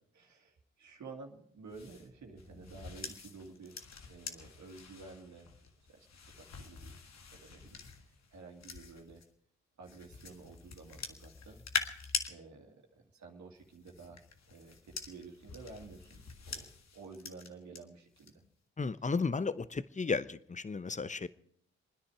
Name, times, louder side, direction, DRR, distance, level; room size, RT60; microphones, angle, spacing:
voice 1, 0.1-3.8 4.1-5.5 5.9-7.0 7.3-9.2 9.8-11.6 12.3-14.2 14.5-18.3, right 4 dB, 65° right, 2.3 m, -52 dB
sound 1, 1.7-9.3 9.8-12.3 13.6-17.8 18.2-18.5, left 5 dB, 60° left, 1.7 m, -44 dB
voice 2, 18.8-21.3, left 4 dB, 25° left, 0.8 m, -34 dB
27.5 x 10.0 x 4.8 m
supercardioid pair, 45°, 31 cm